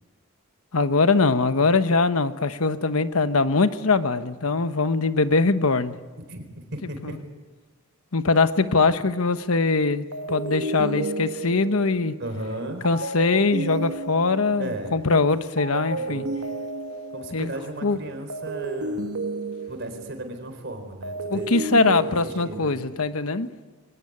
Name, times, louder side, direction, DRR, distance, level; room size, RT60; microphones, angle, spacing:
voice 1, 0.7-6.0 7.0-7.1 8.1-12.1 12.8-16.3 17.3-17.5 17.8-18.0 21.3-23.5, left 3 dB, 80° left, 11 dB, 1.1 m, -22 dB
voice 2, 6.2-7.2 12.2-12.9 14.6-15.3 16.0-16.3 17.1-19.1 19.7-21.5 21.8-22.8, right 1 dB, 55° right, 6 dB, 4.3 m, -36 dB
sound 1, 8.6-9.6 10.1-15.3 15.6-20.5 20.9-23.0, right 2 dB, 85° right, 2.1 m, -33 dB
23.5 x 19.0 x 9.7 m, 1.3 s
head